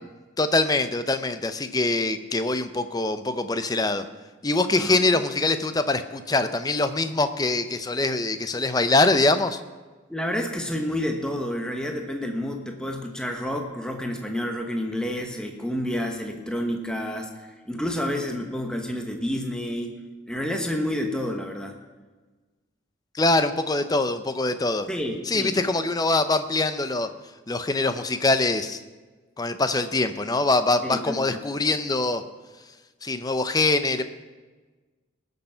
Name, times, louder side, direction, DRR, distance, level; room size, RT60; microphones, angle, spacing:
voice 1, 0.4-4.0 4.4-9.6 23.1-24.9 25.3-27.1 27.5-28.8 29.4-32.2 33.0-34.0, left 2 dB, 20° left, 10 dB, 0.6 m, -23 dB
voice 2, 4.7-5.0 10.1-19.9 20.3-21.8 24.9-25.6 30.8-31.4, equal, 5° left, 3 dB, 1.0 m, -29 dB
19.5 x 6.7 x 5.7 m, 1.3 s
head